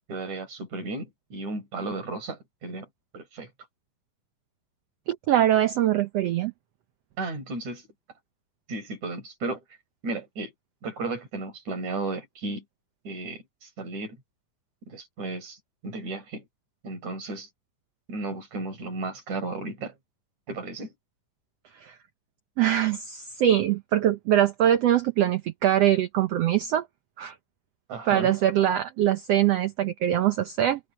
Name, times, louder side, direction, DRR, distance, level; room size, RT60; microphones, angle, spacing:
voice 1, 0.1-2.9 3.1-3.5 7.2-7.8 8.7-9.6 10.0-10.5 10.8-12.6 13.0-14.2 14.9-16.5 16.8-17.5 18.1-19.9 20.5-20.9 27.9-28.3, right 2 dB, 55° right, 5.8 m, -34 dB
voice 2, 5.1-6.5 21.8-21.9 22.6-26.8 27.2-27.3 28.1-30.8, right 11 dB, 75° right, 1.5 m, -23 dB
omnidirectional pair, 3.9 m